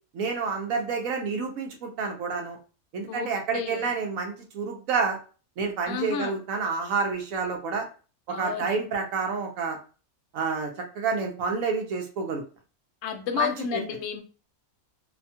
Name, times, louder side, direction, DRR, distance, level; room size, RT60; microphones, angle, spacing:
voice 1, 0.1-2.6 2.9-5.2 5.6-7.9 8.3-9.8 10.3-12.4 13.4-13.8, right 5 dB, 70° right, 3 dB, 1.0 m, -29 dB
voice 2, 3.1-3.9 5.9-6.3 8.3-8.8 13.0-14.2, left 7 dB, 65° left, 6 dB, 0.9 m, -31 dB
2.8 x 2.2 x 2.7 m, 0.36 s
omnidirectional pair, 1.6 m